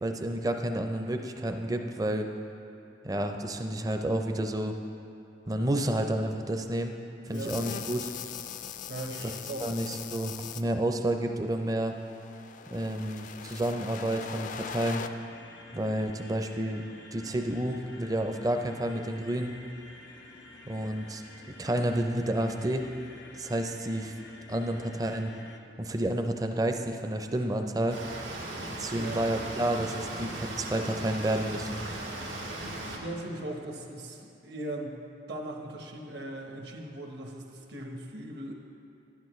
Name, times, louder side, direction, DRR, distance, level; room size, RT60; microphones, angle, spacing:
voice 1, 0.0-2.3 3.0-4.7 5.5-6.9 7.3-8.1 9.6-11.9 12.7-15.0 15.7-16.8 17.1-19.5 20.7-21.2 21.6-22.8 23.4-24.1 24.5-25.3 25.8-28.0 28.8-31.8, right 1 dB, 20° right, 5 dB, 0.5 m, -30 dB
sound 1, 7.3-10.6 11.7-15.1, left 7 dB, 45° left, 0.3 m, -40 dB
voice 2, 8.9-9.9 28.9-29.2 33.0-35.0 35.3-38.5, right 1 dB, 60° right, 1 dB, 1.0 m, -39 dB
sound 2, 14.9-25.6, left 2 dB, 80° left, 0.9 m, -50 dB
sound 3, 27.9-33.0, right 1 dB, 85° right, 1.8 m, -37 dB
11.5 x 10.5 x 3.1 m, 2.6 s
head